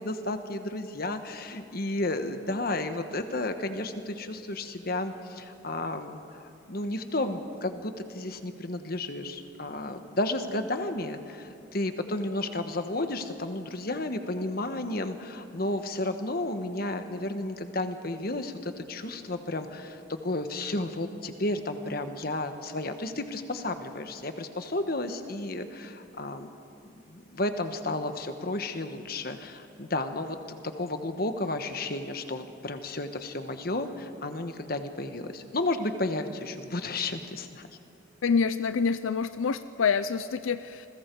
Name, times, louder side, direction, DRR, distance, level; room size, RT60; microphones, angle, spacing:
voice 1, 0.0-26.5 27.1-37.7, left 2 dB, 50° left, 7 dB, 1.3 m, -32 dB
voice 2, 38.2-40.9, left 5 dB, 90° left, 12 dB, 0.5 m, -27 dB
29.0 x 22.0 x 4.7 m, 2.6 s
head